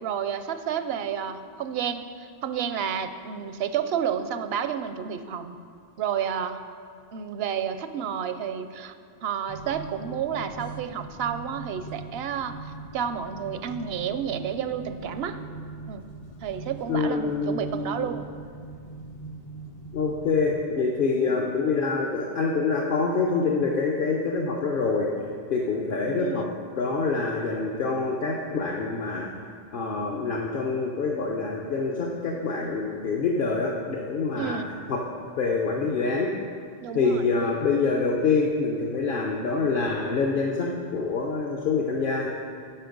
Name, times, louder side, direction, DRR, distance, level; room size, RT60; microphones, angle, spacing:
voice 1, 0.0-5.6 6.0-6.6 7.1-9.0 9.2-15.4 15.9-16.1 16.4-18.3 21.2-21.3 26.2-26.5 34.4-34.8 36.8-37.3, right 8 dB, 75° right, 10 dB, 0.8 m, -30 dB
sound 1, 9.5-20.7, right 3 dB, 40° left, 0.6 m, -42 dB
voice 2, 16.9-18.1 19.9-25.1 25.5-26.4 26.7-29.3 29.7-34.6 34.9-35.0 35.4-36.3 36.9-42.3, left 4 dB, 60° left, -1 dB, 0.9 m, -26 dB
10.0 x 6.5 x 5.2 m, 2.3 s
omnidirectional pair, 1.0 m